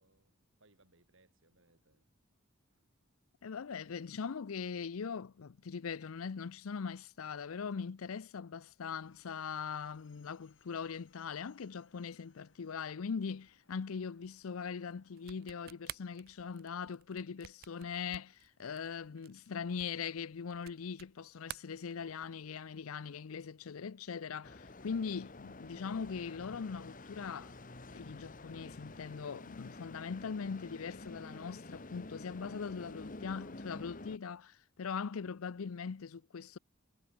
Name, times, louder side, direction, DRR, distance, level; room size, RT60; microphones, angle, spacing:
voice 1, 0.0-2.1 2.7-2.8 4.0-4.1, right 2 dB, 65° right, 3.9 m, -70 dB
voice 2, 3.4-27.5 27.9-36.6, left 6 dB, 90° left, 0.5 m, -41 dB
sound 1, 9.0-16.0, left 4 dB, 60° left, 4.4 m, -71 dB
sound 2, 15.2-21.2 21.4-22.4, right 13 dB, 45° right, 0.3 m, -50 dB
sound 3, 24.4-34.2, left 2 dB, 40° left, 1.4 m, -49 dB
head